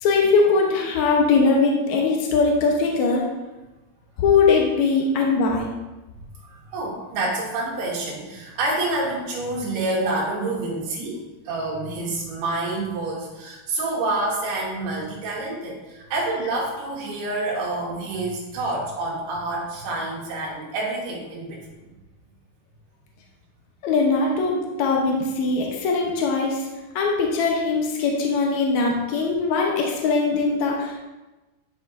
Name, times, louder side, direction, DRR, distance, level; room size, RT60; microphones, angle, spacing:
voice 1, 0.0-3.3 4.2-5.7 23.8-26.7 26.9-31.0, left 4 dB, 80° left, -1 dB, 1.7 m, -21 dB
voice 2, 6.4-21.6, right 2 dB, 85° right, -5 dB, 3.6 m, -28 dB
10.5 x 6.8 x 2.6 m, 1.1 s
omnidirectional pair, 4.5 m